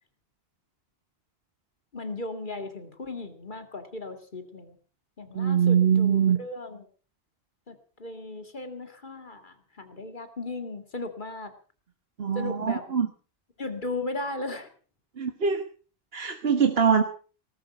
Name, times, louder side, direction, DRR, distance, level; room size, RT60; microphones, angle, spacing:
voice 1, 1.9-4.8 5.2-6.9 7.7-11.5 12.3-12.8 13.6-14.7, left 2 dB, 50° left, 7 dB, 2.4 m, -36 dB
voice 2, 5.3-6.4 12.2-13.1 15.2-15.6 16.1-17.0, right 7 dB, 75° right, 7 dB, 1.5 m, -23 dB
19.0 x 13.5 x 5.3 m, 0.38 s
omnidirectional pair, 1.0 m